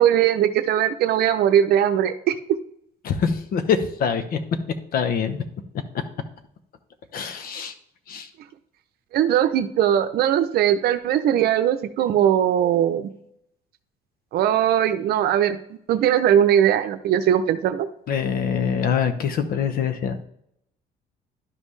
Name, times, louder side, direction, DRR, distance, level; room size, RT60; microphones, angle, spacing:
voice 1, 0.0-2.4 9.1-13.1 14.3-17.9, right 10 dB, 70° right, 9 dB, 0.7 m, -20 dB
voice 2, 3.0-4.4 4.9-5.4 7.1-7.7 8.1-8.3 18.1-20.2, left 7 dB, 60° left, 10 dB, 0.9 m, -24 dB
11.5 x 5.4 x 3.3 m, 0.72 s
cardioid pair, 110°, 17 cm